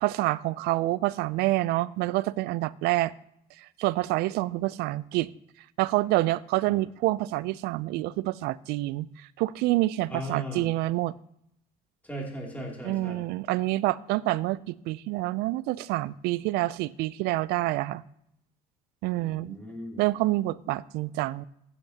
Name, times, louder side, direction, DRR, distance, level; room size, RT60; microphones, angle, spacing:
voice 1, 0.0-3.1 3.8-5.3 5.8-9.1 9.4-11.1 12.8-18.0 19.0-19.6 20.0-21.4, right 18 dB, 80° right, 19 dB, 0.4 m, -27 dB
voice 2, 10.1-10.7 12.0-13.2 19.2-20.0, right 1 dB, 10° left, -2 dB, 2.7 m, -37 dB
15.5 x 8.2 x 2.8 m, 0.76 s
cardioid pair, 110°, 16 cm